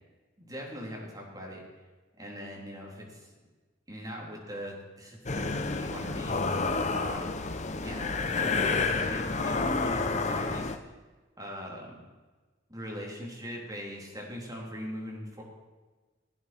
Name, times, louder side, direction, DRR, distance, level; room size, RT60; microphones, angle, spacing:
voice 1, 0.4-1.6 2.2-3.4 3.9-7.4 7.7-10.9 11.4-12.0 12.7-15.4, equal, 20° right, -2 dB, 3.6 m, -41 dB
sound 1, 5.3-10.8, left 3 dB, 40° left, 0.9 m, -29 dB
17.0 x 9.5 x 6.0 m, 1.3 s
head